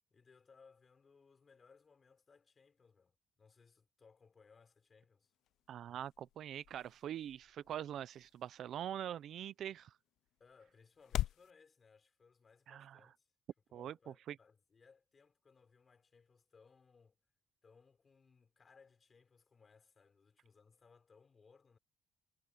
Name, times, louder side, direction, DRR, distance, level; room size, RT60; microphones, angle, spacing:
voice 1, 0.1-5.3 10.4-13.3 13.7-17.2 17.6-21.8, left 5 dB, 30° left, 4.5 m, -66 dB
sound 1, 5.2-11.5, left 14 dB, 70° left, 0.3 m, -46 dB
voice 2, 5.7-9.9 12.7-13.0 13.7-13.9 14.3-14.4, right 10 dB, 55° right, 0.6 m, -43 dB
cardioid pair, 130°, 0 cm